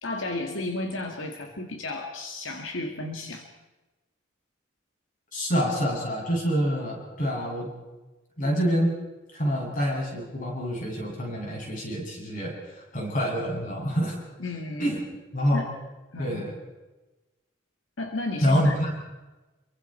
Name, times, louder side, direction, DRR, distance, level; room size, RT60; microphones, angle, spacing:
voice 1, 0.0-3.5 14.4-14.9 15.5-15.7 16.1-16.4 18.0-18.9, left 2 dB, 80° left, 3 dB, 2.1 m, -33 dB
voice 2, 5.3-7.7 8.4-8.9 9.3-14.2 14.8-15.0 15.3-15.6 16.2-16.5 18.4-18.9, equal, 40° left, -1 dB, 7.9 m, -26 dB
28.0 x 23.5 x 4.5 m, 1.1 s
head